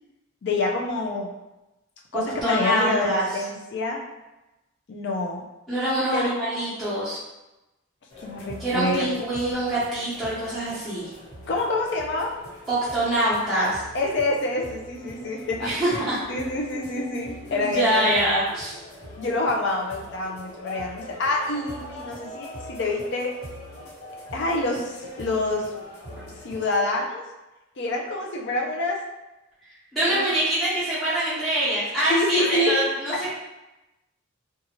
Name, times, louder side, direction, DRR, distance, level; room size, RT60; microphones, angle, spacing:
voice 1, 0.4-1.3 2.1-4.0 4.9-5.4 6.1-6.3 8.2-9.1 11.5-12.3 13.9-18.2 19.2-23.3 24.3-25.6 26.4-27.2 27.8-29.0 30.1-30.2 32.1-32.8 33.1-33.3, left 2 dB, 55° left, 0 dB, 0.4 m, -27 dB
voice 2, 2.1-3.2 5.7-7.2 8.6-11.1 12.7-13.8 15.6-16.2 17.5-18.8 29.9-33.3, right 1 dB, ahead, -12 dB, 0.7 m, -24 dB
sound 1, 8.1-26.8, equal, 80° left, 1.1 m, -42 dB
2.7 x 2.4 x 2.9 m, 1.0 s
head